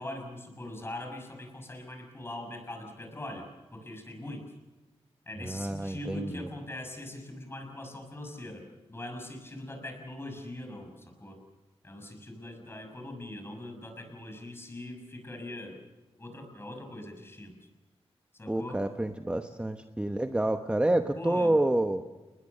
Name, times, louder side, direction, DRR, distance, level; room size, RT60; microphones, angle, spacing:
voice 1, 0.0-3.5 3.7-4.5 5.3-11.4 11.8-15.8 16.2-17.5 18.3-18.9 21.2-21.6, left 1 dB, 20° left, 4 dB, 6.3 m, -41 dB
voice 2, 5.4-6.5 18.5-22.0, right 1 dB, 10° right, 6 dB, 1.0 m, -28 dB
30.0 x 20.5 x 6.7 m, 1.2 s
wide cardioid pair, 125°, 11 cm